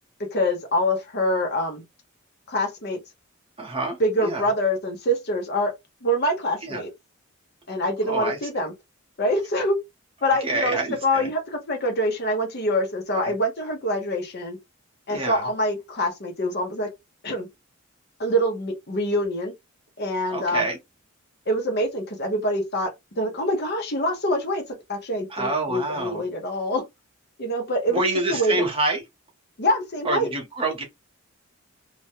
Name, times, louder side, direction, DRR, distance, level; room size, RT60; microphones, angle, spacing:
voice 1, 0.3-1.8 2.5-3.0 4.0-5.7 6.0-6.9 7.7-8.7 9.2-9.8 10.2-14.6 15.1-16.9 17.2-17.5 18.2-19.5 20.0-20.7 21.5-24.6 24.9-26.8 27.4-28.0 28.3-28.6 29.6-30.3, equal, 50° left, 0.8 m, -25 dB
voice 2, 3.6-4.4 6.6-6.8 8.0-8.4 10.4-11.3 13.1-13.3 15.1-15.4 20.3-20.8 25.3-26.2 27.9-29.0 30.0-30.8, right 2 dB, 25° right, 0.8 m, -27 dB
2.4 x 2.1 x 2.9 m
head